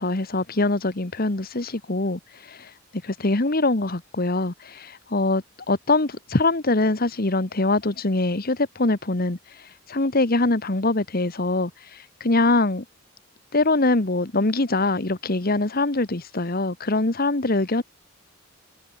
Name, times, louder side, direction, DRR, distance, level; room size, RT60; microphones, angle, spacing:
voice 1, 0.0-2.7 3.0-9.4 9.9-12.8 13.5-17.8, left 2 dB, 45° left, 1.4 m, -23 dB
head